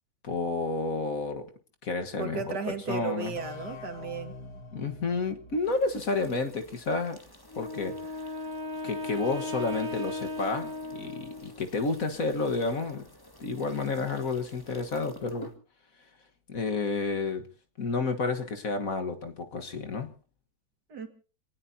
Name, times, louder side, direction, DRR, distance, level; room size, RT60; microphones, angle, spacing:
voice 1, 0.2-1.5 1.8-3.4 4.7-7.2 7.6-8.0 8.8-13.0 13.4-15.5 16.5-17.5 17.8-20.1, left 3 dB, 50° left, 6 dB, 1.8 m, -30 dB
voice 2, 2.2-4.3 20.9-21.1, right 5 dB, 70° right, 5 dB, 2.6 m, -34 dB
sound 1, 3.4-6.9, left 4 dB, 65° left, 2.0 m, -46 dB
sound 2, 5.6-15.6, left 1 dB, 15° left, 1.7 m, -52 dB
Wind instrument woodwind instrument, 7.5-11.7, left 2 dB, 85° right, 2.3 m, -36 dB
27.5 x 18.5 x 2.8 m, 0.38 s
omnidirectional pair, 1.9 m